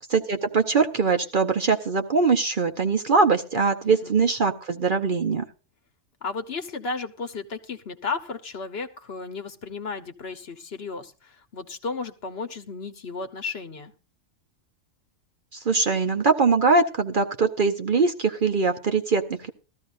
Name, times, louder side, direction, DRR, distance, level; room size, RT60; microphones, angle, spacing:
voice 1, 0.1-5.4 15.5-19.5, right 4 dB, 45° right, 7 dB, 0.8 m, -22 dB
voice 2, 3.8-4.2 6.2-13.9, left 4 dB, 55° left, 9 dB, 1.2 m, -34 dB
18.0 x 13.5 x 2.5 m, 0.34 s
omnidirectional pair, 1.4 m